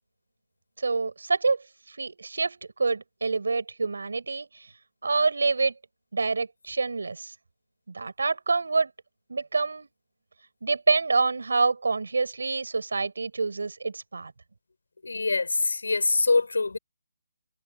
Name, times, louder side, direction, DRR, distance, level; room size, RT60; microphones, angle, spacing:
voice 1, 0.8-4.7 5.0-5.7 6.1-7.3 7.9-8.9 9.3-9.9 10.6-14.3, right 4 dB, 80° right, 4.6 m, -27 dB
voice 2, 15.0-16.8, left 3 dB, 90° left, 4.9 m, -24 dB
hypercardioid pair, 165°, 0 cm